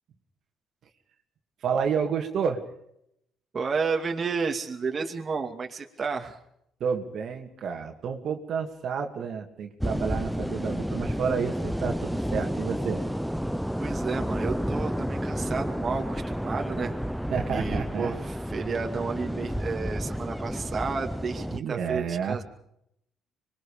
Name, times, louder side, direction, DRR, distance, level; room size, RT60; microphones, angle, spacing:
voice 1, 1.6-2.6 6.8-13.0 17.3-18.3 21.5-22.4, right 6 dB, 60° right, 4 dB, 2.5 m, -30 dB
voice 2, 3.5-6.4 13.8-17.0 17.3-18.1 18.5-22.4, right 5 dB, 40° right, 3 dB, 2.4 m, -31 dB
sound 1, 9.8-21.6, equal, ahead, 0.8 m, -31 dB
26.0 x 22.0 x 5.1 m, 0.75 s
cardioid pair, 90°, 0 cm